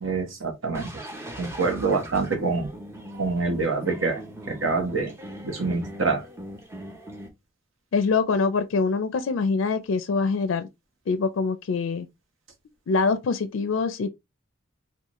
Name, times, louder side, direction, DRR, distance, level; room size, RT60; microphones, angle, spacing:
voice 1, 0.0-0.9 1.4-2.7 3.2-4.2 4.5-5.2 5.4-6.2, right 4 dB, 70° right, 1.0 m, -26 dB
sound 1, 0.7-7.3, equal, 15° right, 0.6 m, -40 dB
voice 2, 7.9-10.7 11.1-12.1 12.9-14.1, left 4 dB, 70° left, 0.4 m, -24 dB
3.8 x 2.3 x 3.0 m
head